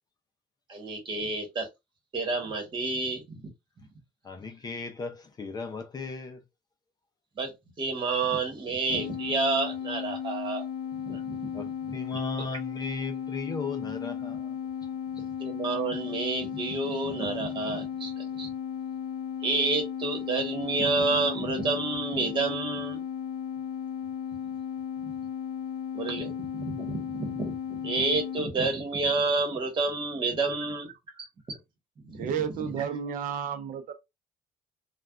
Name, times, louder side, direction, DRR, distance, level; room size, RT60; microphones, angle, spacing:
voice 1, 0.7-1.7 2.1-3.4 7.4-7.5 7.8-10.6 11.0-11.5 11.9-12.5 15.3-18.5 19.4-23.0 25.0-25.2 25.9-30.9 31.2-31.6 32.0-32.3 32.6-32.7, right 3 dB, 35° right, 1.3 m, -30 dB
voice 2, 4.2-6.4 11.5-14.6, left 4 dB, 25° left, 0.5 m, -36 dB
sound 1, 8.9-28.5, left 8 dB, 85° left, 0.6 m, -35 dB
voice 3, 32.2-33.9, right 7 dB, 70° right, 0.5 m, -32 dB
3.3 x 2.3 x 2.3 m
cardioid pair, 145°, 15 cm